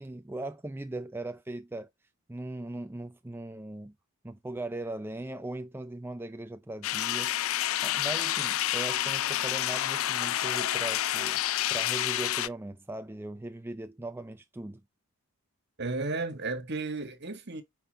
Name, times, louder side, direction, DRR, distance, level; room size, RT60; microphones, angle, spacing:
voice 1, 0.0-1.9 2.3-3.9 4.2-7.4 7.8-11.4 11.7-14.8, right 2 dB, 10° right, 0.4 m, -39 dB
sound 1, 6.8-12.5, left 13 dB, 75° left, 0.4 m, -29 dB
voice 2, 15.8-17.6, right 3 dB, 50° right, 1.6 m, -33 dB
8.9 x 4.3 x 4.1 m
head